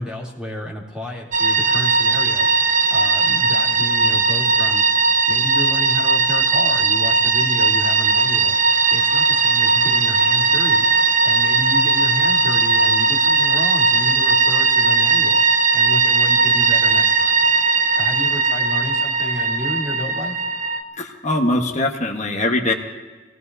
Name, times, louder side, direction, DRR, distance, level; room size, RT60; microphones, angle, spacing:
voice 1, 0.0-2.5 2.9-4.9 5.3-8.6 8.9-10.8 11.2-15.4 15.7-17.3 18.0-20.3, equal, 5° right, -5 dB, 3.2 m, -31 dB
sound 1, 1.3-20.8, right 4 dB, 40° right, 1.0 m, -18 dB
voice 2, 21.0-22.7, left 1 dB, 40° left, 3 dB, 1.4 m, -21 dB
25.5 x 18.5 x 2.7 m, 1.3 s
head